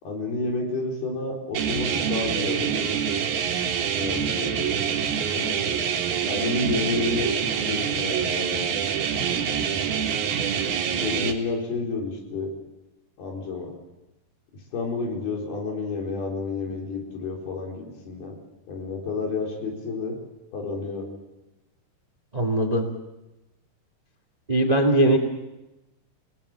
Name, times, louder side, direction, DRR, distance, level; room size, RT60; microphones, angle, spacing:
voice 1, 0.0-2.9 3.9-4.8 5.3-6.0 6.2-8.8 10.9-12.5 13.2-13.7 14.7-18.4 18.7-20.2 20.5-21.1, left 3 dB, 70° left, 0 dB, 6.2 m, -30 dB
sound 1, 1.5-11.3, right 7 dB, 70° right, 3.5 m, -26 dB
voice 2, 22.3-22.9 24.5-25.2, right 1 dB, 50° right, 4 dB, 0.4 m, -20 dB
29.0 x 18.5 x 6.8 m, 1.0 s
omnidirectional pair, 4.7 m